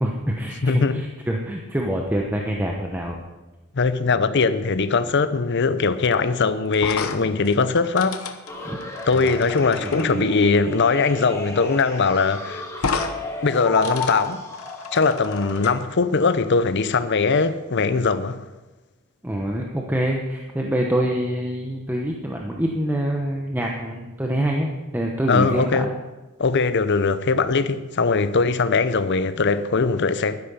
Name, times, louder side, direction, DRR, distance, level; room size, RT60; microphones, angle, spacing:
voice 1, 0.0-3.2 8.6-8.8 9.1-9.3 9.8-9.9 19.2-25.9, right 1 dB, 10° right, 0.9 m, -25 dB
voice 2, 0.6-1.0 3.7-8.2 9.1-12.6 13.4-14.4 14.9-18.5 25.3-25.9 26.4-30.4, left 4 dB, 55° left, 0.7 m, -21 dB
sound 1, 6.7-10.1 11.5-11.7 11.9-12.0 12.8-13.1 13.5-15.7, left 5 dB, 90° left, 1.0 m, -32 dB
sound 2, 8.5-15.5, equal, 15° left, 1.8 m, -32 dB
12.0 x 10.5 x 5.5 m
head